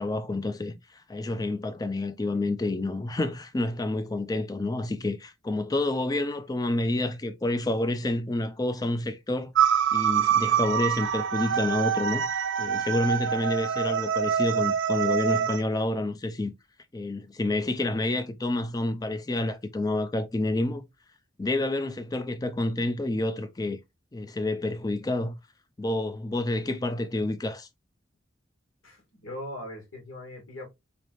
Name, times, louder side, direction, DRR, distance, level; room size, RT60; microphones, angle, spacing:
voice 1, 0.0-9.5 9.9-16.5 16.9-20.8 21.4-23.8 24.1-25.4 25.8-27.7, left 2 dB, 20° left, 0.4 m, -29 dB
sound 1, 9.5-15.6, right 8 dB, 60° right, 0.4 m, -25 dB
voice 2, 28.8-30.7, left 1 dB, 75° left, 2.0 m, -40 dB
4.0 x 3.3 x 2.5 m
head